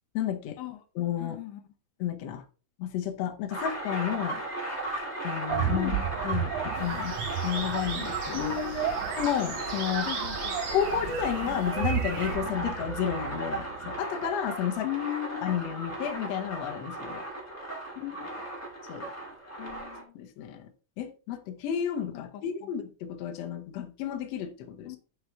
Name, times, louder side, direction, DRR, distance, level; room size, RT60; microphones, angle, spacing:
voice 1, 0.1-0.6 1.0-1.4 2.0-2.4 2.8-4.4 5.2-7.1 7.4-8.5 9.2-10.1 10.7-14.9 15.4-17.2 18.9-19.1 20.2-20.7 21.0-25.0, left 10 dB, 65° left, 1.9 m, -31 dB
voice 2, 1.2-1.6 5.7-6.0 8.3-9.1 10.0-10.6 14.8-15.6 18.0-18.5 19.6-20.2 22.1-22.7 24.9-25.0, left 16 dB, 85° left, 2.4 m, -37 dB
sound 1, 3.5-20.0, right 1 dB, 5° left, 1.9 m, -36 dB
sound 2, 5.5-14.3, right 10 dB, 75° right, 2.1 m, -34 dB
sound 3, 6.7-12.4, right 5 dB, 55° right, 1.2 m, -39 dB
7.4 x 6.3 x 3.5 m
omnidirectional pair, 3.7 m